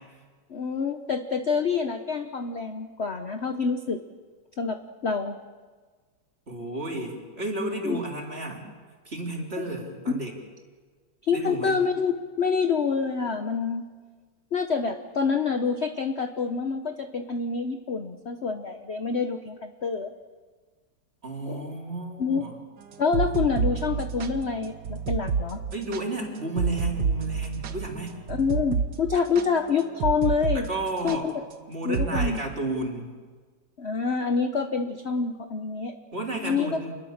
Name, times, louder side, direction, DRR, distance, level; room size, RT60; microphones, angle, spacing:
voice 1, 0.5-4.0 4.6-5.4 7.8-8.0 11.2-13.9 14.5-20.1 21.5-21.7 22.2-22.5 23.0-25.6 28.3-30.7 31.0-31.4 31.8-32.4 33.8-35.9 36.4-36.7, left 5 dB, 45° left, 7 dB, 1.0 m, -27 dB
voice 2, 6.5-8.7 9.1-10.4 11.3-11.8 21.2-22.5 25.7-28.2 30.5-31.3 31.7-33.1 36.1-36.9, right 2 dB, 30° right, 0 dB, 3.8 m, -32 dB
sound 1, 22.9-30.6 30.9-31.2 31.9-32.3, right 5 dB, 70° right, 1.8 m, -29 dB
27.5 x 21.5 x 7.3 m, 1.5 s
omnidirectional pair, 2.0 m